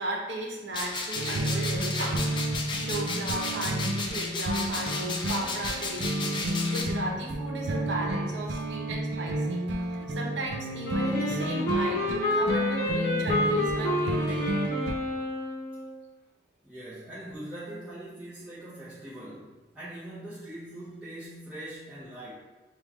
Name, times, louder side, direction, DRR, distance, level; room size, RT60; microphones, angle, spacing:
voice 1, 0.0-2.3 2.8-9.6 9.9-12.0 12.3-14.4, right 1 dB, 90° right, -1 dB, 0.8 m, -36 dB
sound 1, 0.7-6.8, left 3 dB, 25° left, 0.4 m, -34 dB
sound 2, 1.1-14.9, right 1 dB, 65° right, 0.4 m, -31 dB
Wind instrument woodwind instrument, 10.8-15.9, left 1 dB, 60° left, 0.7 m, -29 dB
voice 2, 16.6-22.3, right 1 dB, 5° right, -12 dB, 0.7 m, -42 dB
5.2 x 2.3 x 3.0 m, 1.2 s
head